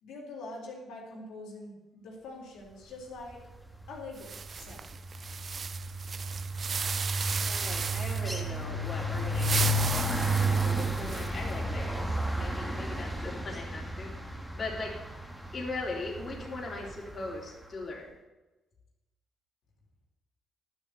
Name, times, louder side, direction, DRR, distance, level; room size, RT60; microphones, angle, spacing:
voice 1, 0.0-3.4 3.9-4.9, left 2 dB, 85° left, -3 dB, 3.7 m, -44 dB
sound 1, 3.6-4.0 4.2-17.4, right 1 dB, ahead, 1.8 m, -32 dB
sound 2, 4.2-8.4 9.2-11.5, right 5 dB, 45° right, 0.5 m, -35 dB
voice 2, 7.5-9.7 9.9-14.1 14.5-14.9 15.5-18.1, left 3 dB, 40° left, -3 dB, 3.4 m, -39 dB
11.5 x 7.1 x 8.0 m, 1.1 s
cardioid pair, 90°, 0 cm